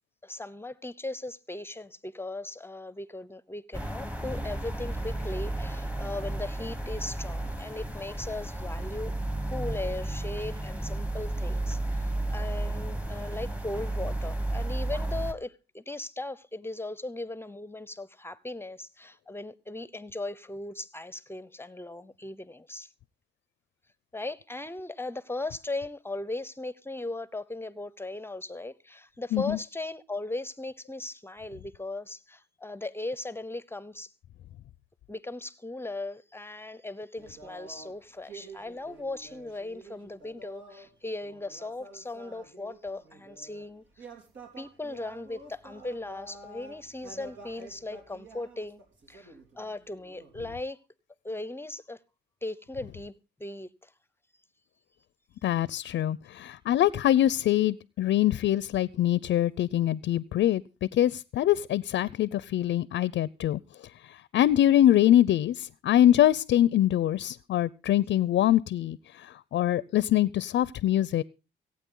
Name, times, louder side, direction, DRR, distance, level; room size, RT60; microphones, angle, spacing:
voice 1, 0.2-9.1 9.5-22.9 24.1-34.1 35.1-44.1 44.6-48.8 49.1-50.8 51.2-52.0 52.4-53.1 53.4-53.9, left 2 dB, 10° left, 0.8 m, -38 dB
sound 1, 3.7-15.3, right 1 dB, 5° right, 1.4 m, -33 dB
sound 2, 37.2-40.9 41.2-43.6 43.9-50.5, right 3 dB, 75° right, 4.3 m, -49 dB
voice 2, 55.4-63.6 64.0-71.2, left 12 dB, 65° left, 0.6 m, -24 dB
24.0 x 8.8 x 3.8 m
cardioid pair, 90°, 20 cm